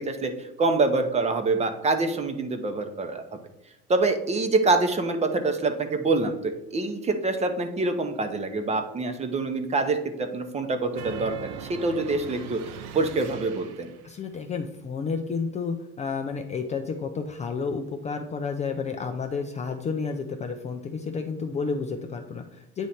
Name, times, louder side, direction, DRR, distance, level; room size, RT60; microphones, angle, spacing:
voice 1, 0.0-3.2 3.9-12.6 12.9-13.9, right 3 dB, 20° right, 7 dB, 0.7 m, -26 dB
sound 1, 10.9-14.1, right 7 dB, 60° right, 0.6 m, -40 dB
voice 2, 14.0-22.9, left 5 dB, 25° left, 5 dB, 0.4 m, -31 dB
9.1 x 3.2 x 4.2 m, 0.91 s
cardioid pair, 135°, 30 cm